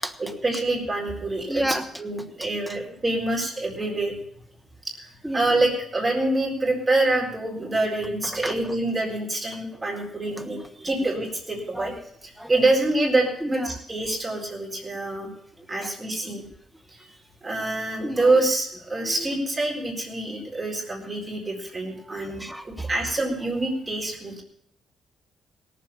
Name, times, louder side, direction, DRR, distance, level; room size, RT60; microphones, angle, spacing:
voice 1, 0.2-4.1 4.8-5.1 5.3-11.9 12.2-15.3 15.7-16.4 16.9-17.1 17.4-24.4, right 2 dB, 25° right, -2 dB, 4.2 m, -26 dB
voice 2, 1.5-1.8 5.2-5.5 8.4-8.6 11.7-11.9 12.4-12.5 13.4-13.6 15.8-15.9 18.0-18.3 22.4-22.9, right 1 dB, 5° right, 8 dB, 1.3 m, -29 dB
17.5 x 7.6 x 6.9 m, 0.71 s
cardioid pair, 90°, 0 cm